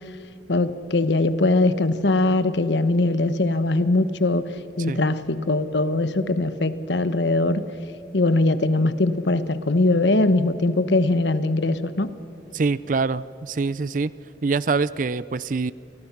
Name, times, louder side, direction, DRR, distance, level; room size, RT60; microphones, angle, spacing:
voice 1, 0.5-4.5 4.8-7.6 8.1-12.1, left 2 dB, 85° left, 12 dB, 1.1 m, -21 dB
voice 2, 12.5-14.1 14.4-15.7, right 4 dB, 50° right, 18 dB, 0.5 m, -24 dB
30.0 x 23.0 x 5.9 m, 2.5 s
head